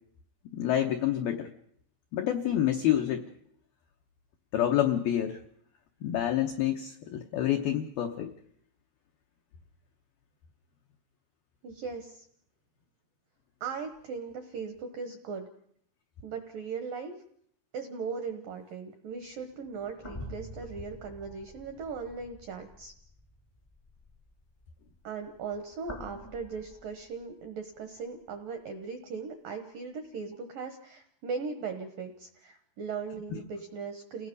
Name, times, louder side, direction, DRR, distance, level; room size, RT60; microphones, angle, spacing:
voice 1, 0.5-1.5 2.1-3.3 4.5-5.4 6.0-8.4, left 11 dB, 85° left, 5 dB, 2.1 m, -28 dB
voice 2, 11.6-12.3 13.6-15.5 16.2-17.1 17.7-22.9 25.0-34.3, right 5 dB, 75° right, 6 dB, 2.0 m, -38 dB
sound 1, 19.3-27.6 28.2-28.3 30.3-30.4, equal, 25° left, 0.6 m, -48 dB
29.5 x 18.0 x 5.3 m, 0.66 s
omnidirectional pair, 5.6 m